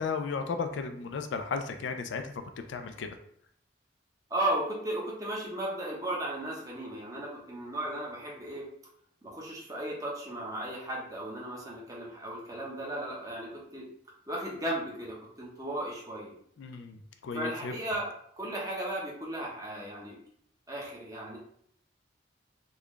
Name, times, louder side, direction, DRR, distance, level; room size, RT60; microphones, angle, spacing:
voice 1, 0.0-2.4 2.7-3.2 16.6-17.7, left 5 dB, 70° left, 7 dB, 0.3 m, -34 dB
voice 2, 4.3-8.7 9.2-13.9 14.3-16.3 17.3-20.2 20.7-21.4, right 1 dB, 20° right, -4 dB, 0.9 m, -35 dB
3.8 x 2.3 x 3.2 m, 0.66 s
head